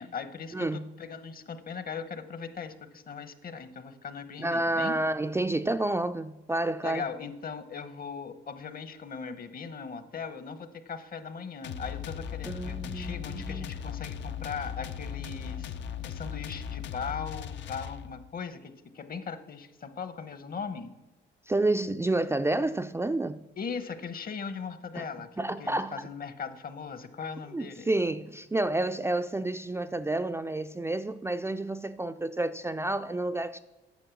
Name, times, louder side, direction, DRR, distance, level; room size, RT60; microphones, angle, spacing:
voice 1, 0.0-5.0 6.8-15.8 16.0-20.9 23.6-27.9, left 6 dB, 45° left, 1.0 m, -39 dB
voice 2, 0.5-0.9 4.4-7.0 12.4-13.7 21.5-23.4 25.0-25.1 25.4-25.9 27.5-33.6, right 2 dB, 15° right, 0.4 m, -29 dB
sound 1, 11.6-18.3, left 8 dB, 65° left, 0.6 m, -38 dB
9.2 x 6.7 x 7.0 m
cardioid pair, 90°, 20 cm